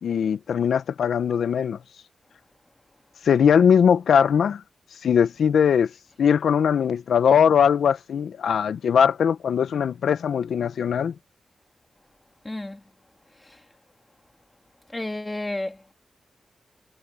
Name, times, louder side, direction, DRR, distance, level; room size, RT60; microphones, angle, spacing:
voice 1, 0.0-1.8 3.2-4.6 5.0-5.9 6.2-11.1, left 7 dB, 80° left, 0.6 m, -20 dB
voice 2, 12.4-12.8 13.4-13.6 14.9-15.9, left 1 dB, 10° left, 2.1 m, -32 dB
wide cardioid pair, 175°, 0 cm